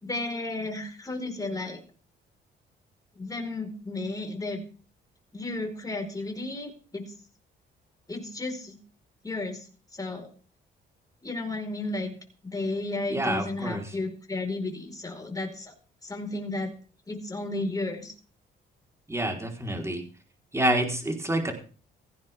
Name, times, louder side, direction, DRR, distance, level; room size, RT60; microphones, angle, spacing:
voice 1, 0.0-1.8 3.2-4.6 5.3-7.1 8.1-8.8 9.2-9.6 9.9-10.3 11.2-12.1 12.4-15.7 16.0-16.7 17.1-18.1, left 2 dB, 20° left, 3 dB, 4.9 m, -33 dB
voice 2, 13.1-13.9 19.1-20.0 20.5-21.5, right 1 dB, 15° right, 2 dB, 4.3 m, -28 dB
17.5 x 16.0 x 3.7 m, 0.39 s
cardioid pair, 90°, 20 cm